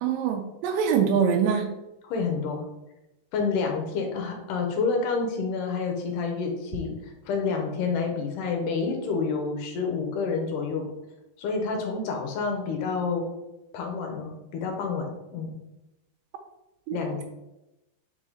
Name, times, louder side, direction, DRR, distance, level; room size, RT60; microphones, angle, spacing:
voice 1, 0.0-1.7 16.9-17.0, right 7 dB, 80° right, 3 dB, 2.1 m, -24 dB
voice 2, 2.0-2.6 3.3-10.9 11.4-13.2 13.7-15.1 15.3-15.5 16.9-17.2, left 4 dB, 75° left, 2 dB, 2.0 m, -28 dB
5.2 x 4.8 x 3.8 m, 0.95 s
omnidirectional pair, 4.5 m